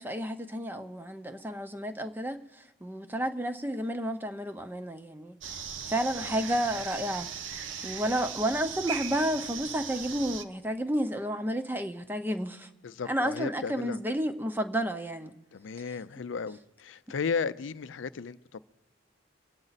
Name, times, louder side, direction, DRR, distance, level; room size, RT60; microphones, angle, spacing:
voice 1, 0.0-5.6 5.9-7.3 7.8-12.7 13.1-15.3, equal, 10° right, 0.6 m, -31 dB
sound 1, 5.4-10.4, right 7 dB, 80° right, 0.8 m, -38 dB
voice 2, 6.2-6.5 12.8-14.0 15.5-18.6, left 5 dB, 80° left, 0.5 m, -35 dB
24.0 x 8.8 x 4.1 m
head